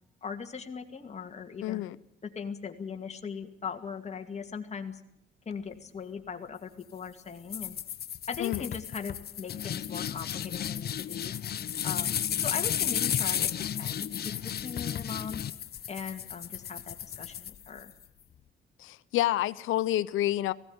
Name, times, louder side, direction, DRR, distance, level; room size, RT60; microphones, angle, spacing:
voice 1, 0.2-1.8 2.2-5.0 5.5-7.8 8.3-11.3 11.8-15.4 15.9-17.9, left 6 dB, 35° left, 2.4 m, -39 dB
voice 2, 1.6-2.0 8.4-8.7 18.8-20.5, left 14 dB, 85° left, 0.8 m, -28 dB
sound 1, 7.5-18.0, left 9 dB, 50° left, 0.8 m, -33 dB
18.0 x 16.0 x 9.8 m
cardioid pair, 90°, 20 cm